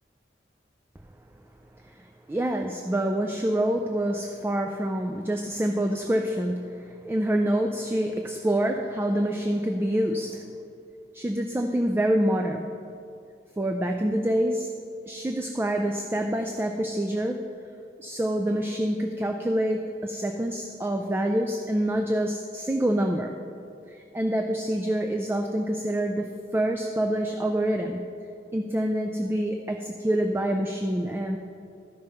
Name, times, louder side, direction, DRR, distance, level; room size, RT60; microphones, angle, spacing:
voice 1, 1.8-10.5 11.1-12.7 13.6-14.7 15.1-17.5 18.0-23.4 23.9-28.0 28.5-31.4, right 1 dB, 15° right, 3 dB, 0.3 m, -26 dB
11.5 x 5.3 x 5.6 m, 2.6 s
head